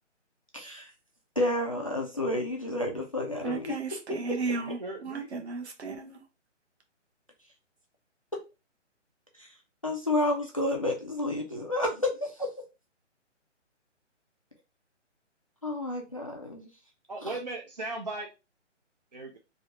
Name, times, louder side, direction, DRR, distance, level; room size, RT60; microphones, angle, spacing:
voice 1, 0.5-0.9 1.4-3.8 9.4-9.5 9.8-12.5 15.6-16.7 17.2-17.4, left 1 dB, 30° left, 1 dB, 0.4 m, -30 dB
voice 2, 3.3-6.2, right 4 dB, 60° right, 2 dB, 1.1 m, -35 dB
voice 3, 4.6-5.3 17.1-18.3 19.1-19.4, right 2 dB, 40° right, 0 dB, 0.4 m, -37 dB
3.3 x 2.4 x 2.8 m, 0.28 s
hypercardioid pair, 155°, 37 cm